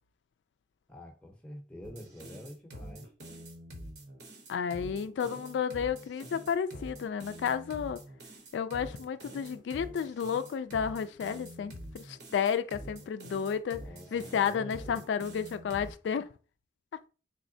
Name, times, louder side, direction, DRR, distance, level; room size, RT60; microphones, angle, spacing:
voice 1, 0.9-3.1 13.8-15.1, equal, 5° left, 0.6 m, -47 dB
sound 1, 1.8-15.9, equal, 70° right, 0.9 m, -46 dB
voice 2, 4.5-8.0 8.5-13.9 14.1-16.3, left 7 dB, 85° left, 0.3 m, -32 dB
3.6 x 3.1 x 2.6 m
head